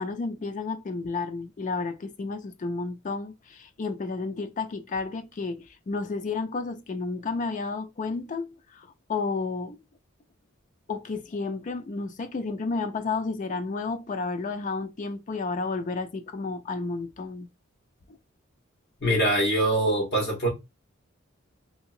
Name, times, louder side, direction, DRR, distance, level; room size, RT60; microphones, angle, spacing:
voice 1, 0.0-9.8 10.9-17.5, left 4 dB, 40° left, 0.4 m, -32 dB
voice 2, 19.0-20.5, right 1 dB, 60° left, 1.2 m, -23 dB
2.8 x 2.8 x 2.4 m
head